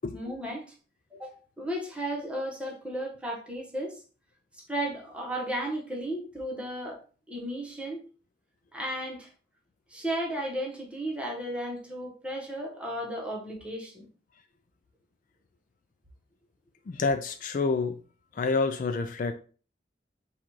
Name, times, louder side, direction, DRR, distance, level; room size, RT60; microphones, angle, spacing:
voice 1, 0.1-0.6 1.1-4.0 4.7-7.0 7.3-8.0 8.7-9.3 9.9-14.1, right 1 dB, 5° right, 0.9 m, -34 dB
voice 2, 16.9-18.0 18.4-19.3, left 4 dB, 50° left, 0.3 m, -28 dB
4.1 x 2.4 x 4.5 m
head